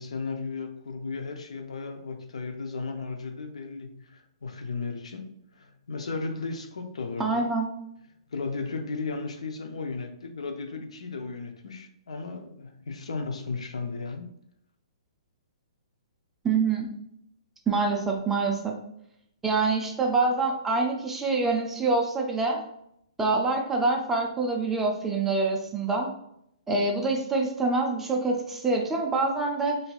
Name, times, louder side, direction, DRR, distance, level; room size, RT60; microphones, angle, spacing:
voice 1, 0.0-7.5 8.3-14.3, left 4 dB, 85° left, 0.6 m, -35 dB
voice 2, 7.2-7.7 16.4-16.9 17.7-18.8 19.4-22.6 23.2-26.1 26.7-29.8, right 3 dB, 10° right, 0.5 m, -26 dB
4.0 x 2.6 x 2.4 m
hypercardioid pair, 150°, 3 cm